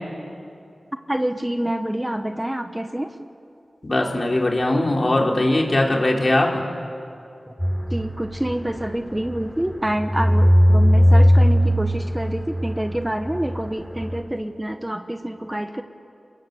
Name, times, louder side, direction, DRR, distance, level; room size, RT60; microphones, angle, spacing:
voice 1, 1.1-3.1 7.9-15.8, right 1 dB, 15° right, 7 dB, 1.3 m, -27 dB
voice 2, 3.8-6.6, left 1 dB, 45° left, 0 dB, 4.3 m, -20 dB
sound 1, 7.6-14.2, equal, 5° left, 6.6 m, -19 dB
29.5 x 21.0 x 8.1 m, 2.6 s
cardioid pair, 45°, 0 cm